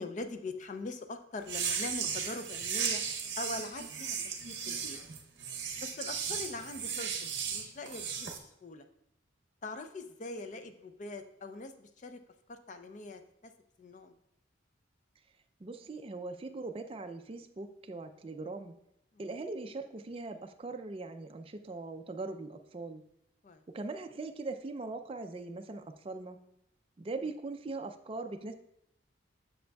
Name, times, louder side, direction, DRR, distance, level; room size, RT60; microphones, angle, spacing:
voice 1, 0.0-3.0 3.4-4.2 4.5-5.0 5.8-7.1 7.5-8.8 9.6-12.2 12.5-13.2 13.8-14.1 19.1-19.3 23.4-23.6 27.2-27.3, left 2 dB, 40° left, 8 dB, 0.4 m, -42 dB
sound 1, 1.4-8.4, right 7 dB, 65° right, 0.7 m, -36 dB
voice 2, 15.6-18.7 19.2-23.0 23.7-26.4 27.0-28.5, right 3 dB, 30° right, 6 dB, 0.3 m, -40 dB
7.7 x 6.8 x 2.3 m, 0.80 s
head